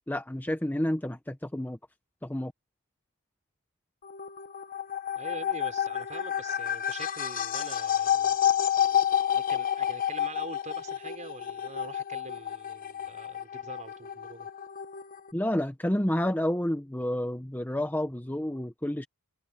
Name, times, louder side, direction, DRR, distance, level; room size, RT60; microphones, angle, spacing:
voice 1, 0.1-1.8 2.2-2.5 15.3-19.1, left 1 dB, 10° left, 1.0 m, -30 dB
sound 1, 4.0-15.3, left 10 dB, 40° left, 0.8 m, -30 dB
voice 2, 5.2-8.4 9.3-14.5, right 3 dB, 35° right, 5.1 m, -44 dB
head